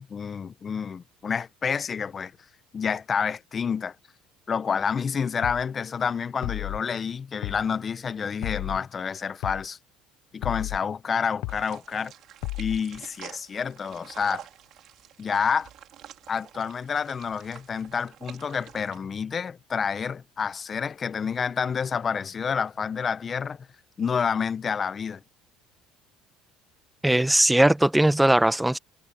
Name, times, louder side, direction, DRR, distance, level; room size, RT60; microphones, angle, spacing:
voice 1, 0.0-2.3 2.7-3.9 4.5-9.8 10.3-12.1 12.6-14.5 15.2-15.7 16.3-23.7 24.0-25.2, left 6 dB, 35° left, 1.0 m, -29 dB
sound 1, 5.4-5.7 6.4-6.8 7.4-7.7 8.4-8.8 9.4-9.7 10.4-10.8 11.4-11.7 12.4-12.8, left 20 dB, 75° left, 0.9 m, -32 dB
sound 2, 11.5-19.0, right 12 dB, 60° right, 4.2 m, -48 dB
voice 2, 27.0-28.8, right 1 dB, 5° right, 1.2 m, -19 dB
supercardioid pair, 85°, 0 cm